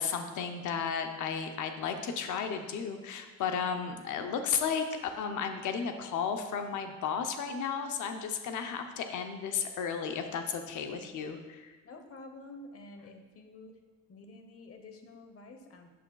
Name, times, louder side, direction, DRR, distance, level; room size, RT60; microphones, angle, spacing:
voice 1, 0.0-11.7, left 6 dB, 75° left, 6 dB, 0.7 m, -34 dB
voice 2, 11.8-13.8 14.1-15.9, left 2 dB, 50° left, 6 dB, 1.0 m, -49 dB
8.4 x 7.0 x 2.3 m, 1.3 s
cardioid pair, 90°, 30 cm